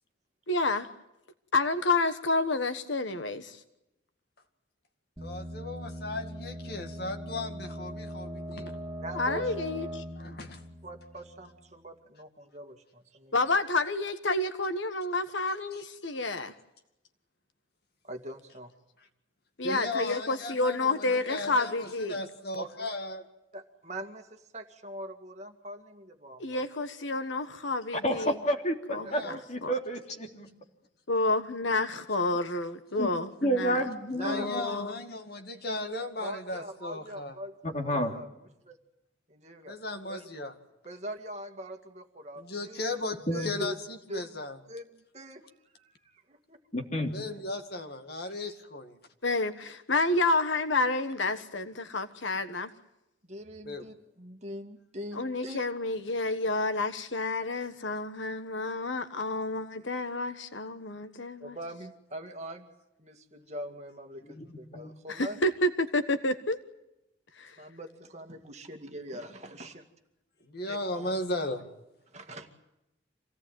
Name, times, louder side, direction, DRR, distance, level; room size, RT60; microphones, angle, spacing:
voice 1, 0.5-0.9 1.5-3.6 9.1-10.0 13.3-16.5 19.6-22.2 26.4-28.4 28.9-29.7 31.1-33.8 34.2-35.0 49.2-52.7 55.1-61.6 65.1-66.6 67.4-67.6, left 2 dB, 70° left, 10 dB, 1.3 m, -29 dB
voice 2, 5.2-8.8 10.2-10.7 15.7-15.8 19.6-23.3 29.0-29.4 34.2-37.4 39.7-40.5 42.4-44.6 47.1-49.0 53.7-53.9 70.5-71.7, left 2 dB, 50° left, 7 dB, 2.2 m, -36 dB
sound 1, 5.2-11.8, equal, 5° right, 3.0 m, -40 dB
voice 3, 9.0-9.5 10.8-13.3 18.0-18.7 22.6-22.9 23.5-26.6 29.0-29.4 34.2-34.8 36.2-37.6 37.8-38.3 38.6-38.8 39.3-39.8 40.1-40.3 40.8-43.0 43.3-43.8 44.1-44.3 44.7-45.4 45.7-46.6 53.2-55.6 61.4-62.7 63.0-65.4 67.6-69.8 70.7-71.1 72.1-72.5, equal, 35° right, 5 dB, 2.2 m, -42 dB
voice 4, 28.0-29.2 29.5-30.5 33.0-33.1 33.4-34.6 37.6-38.1 43.3-43.5 46.7-47.1 64.3-64.9, equal, 35° left, 3 dB, 3.2 m, -30 dB
26.5 x 17.5 x 9.1 m, 0.89 s
head